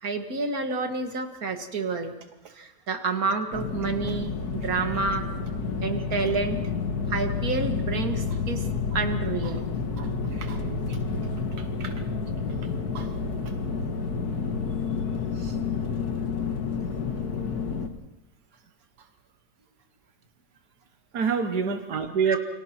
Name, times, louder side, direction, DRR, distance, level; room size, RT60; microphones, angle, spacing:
voice 1, 0.0-2.1 2.5-5.3 5.8-6.7 7.1-8.7 8.9-9.6 10.3-10.4 15.4-15.6 22.2-22.4, right 4 dB, 65° right, 5 dB, 2.3 m, -29 dB
sound 1, 3.5-17.9, left 5 dB, 75° left, 2.1 m, -30 dB
voice 2, 21.1-22.4, right 6 dB, 90° right, 6 dB, 1.8 m, -26 dB
29.0 x 24.5 x 4.5 m, 0.95 s
omnidirectional pair, 1.7 m